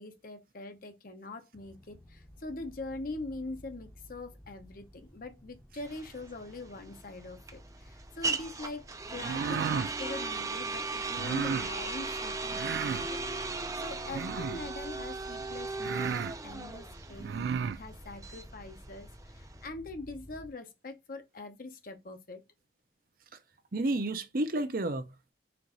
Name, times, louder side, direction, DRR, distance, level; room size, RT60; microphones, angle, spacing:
voice 1, 0.0-8.8 9.1-13.6 13.8-22.4, left 2 dB, 55° left, 0.9 m, -43 dB
sound 1, 1.5-20.5, equal, 5° left, 0.8 m, -52 dB
sound 2, 5.9-19.7, right 3 dB, 20° right, 0.5 m, -37 dB
sound 3, 9.2-9.9 11.2-11.7 12.5-13.1 14.1-14.7 15.4-15.5 15.8-16.4 17.2-17.8, right 6 dB, 80° right, 0.3 m, -33 dB
voice 2, 23.7-25.3, right 2 dB, 55° right, 0.7 m, -31 dB
4.5 x 2.6 x 3.8 m
head